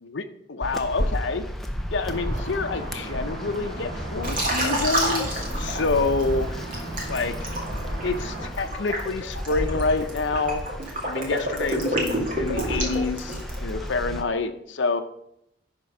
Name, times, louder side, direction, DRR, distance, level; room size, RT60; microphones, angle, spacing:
voice 1, 0.0-1.5 1.9-6.6 7.1-7.5 8.0-10.6 11.0-15.0, left 3 dB, 70° left, 7 dB, 0.6 m, -27 dB
sound 1, 0.6-14.2, equal, ahead, 0.5 m, -33 dB
sound 2, 2.0-8.5, right 1 dB, 80° right, 2.5 m, -36 dB
Liquid, 4.2-6.2 6.7-13.7, right 1 dB, 40° right, 2.1 m, -28 dB
10.5 x 4.4 x 5.3 m, 0.78 s
head